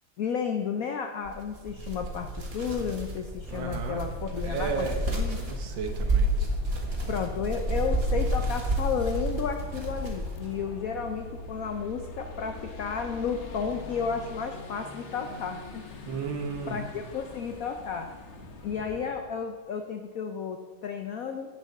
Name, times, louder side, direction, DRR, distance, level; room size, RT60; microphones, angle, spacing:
voice 1, 0.2-4.9 5.1-5.4 7.1-15.8 16.7-18.1 18.6-21.6, left 6 dB, 85° left, 5 dB, 0.7 m, -32 dB
sound 1, 1.2-10.5, right 1 dB, 30° right, 1.4 m, -30 dB
sound 2, 3.4-19.2, left 3 dB, 45° left, 1.0 m, -44 dB
voice 2, 3.5-4.1 4.4-5.0 5.3-6.3 16.1-16.8, right 5 dB, 65° right, 5 dB, 1.6 m, -33 dB
8.3 x 6.9 x 7.1 m, 1.4 s
omnidirectional pair, 2.3 m